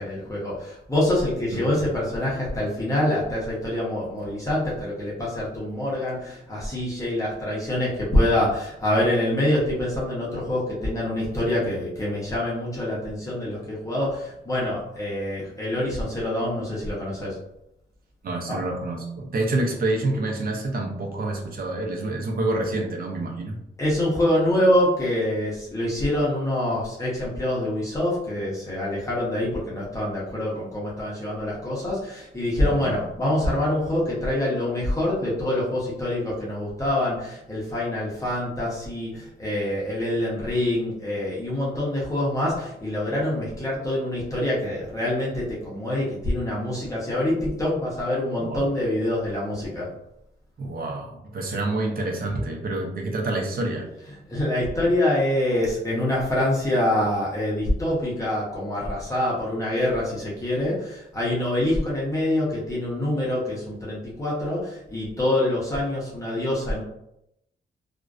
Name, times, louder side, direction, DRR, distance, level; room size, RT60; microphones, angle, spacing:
voice 1, 0.0-17.4 18.5-18.6 23.8-49.9 54.3-66.8, left 1 dB, 15° left, -7 dB, 0.7 m, -25 dB
voice 2, 1.5-1.8 18.2-23.6 32.6-33.0 48.4-48.6 50.6-53.9, right 2 dB, 50° right, 1 dB, 0.5 m, -28 dB
2.5 x 2.1 x 2.3 m, 0.81 s
wide cardioid pair, 115°, 19 cm